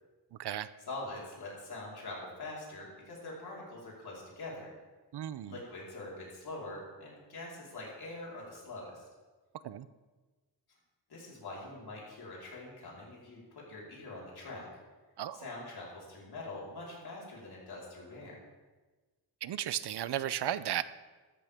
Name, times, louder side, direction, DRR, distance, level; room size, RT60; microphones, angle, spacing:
voice 1, 0.9-4.7 5.4-9.1 11.1-14.7 15.3-18.3, left 2 dB, 70° left, 4.6 m, -44 dB
voice 2, 5.1-5.5 9.6-9.8 15.2-15.4 19.4-20.8, right 11 dB, 75° right, 0.6 m, -34 dB
14.5 x 13.5 x 3.6 m
wide cardioid pair, 155°, 40 cm